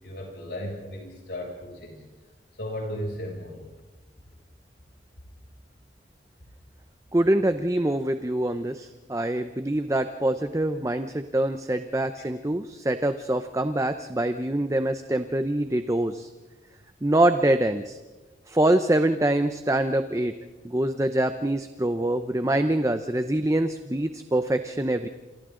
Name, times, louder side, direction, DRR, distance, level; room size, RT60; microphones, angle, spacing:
voice 1, 0.0-2.0 2.6-3.6, equal, 70° left, -1 dB, 6.9 m, -35 dB
voice 2, 7.1-16.3 17.0-18.0 18.5-20.3 20.6-25.1, right 1 dB, 15° right, 9 dB, 0.7 m, -25 dB
28.0 x 28.0 x 3.8 m, 1.2 s
head